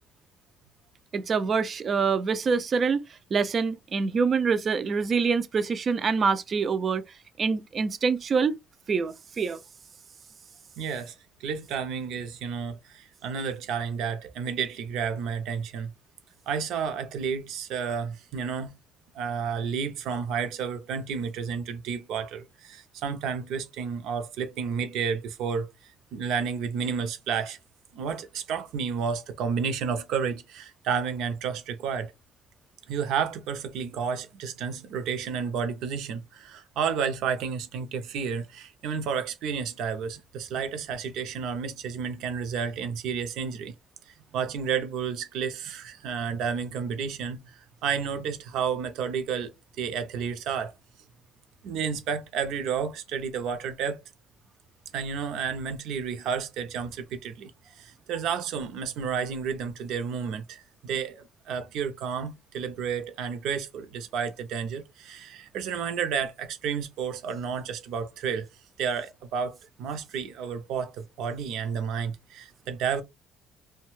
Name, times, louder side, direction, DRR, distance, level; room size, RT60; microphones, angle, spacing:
voice 1, 1.1-3.0 3.3-7.0 7.4-8.6 8.9-9.6, right 5 dB, 35° right, 0.3 m, -25 dB
voice 2, 10.8-11.1 11.4-15.9 16.5-18.7 19.1-25.7 26.1-27.6 27.9-32.1 32.9-43.7 44.3-50.7 51.6-54.0 54.9-57.5 57.8-68.5 68.8-73.0, right 6 dB, 70° right, 0.6 m, -31 dB
2.6 x 2.2 x 3.0 m
cardioid pair, 150°, 0 cm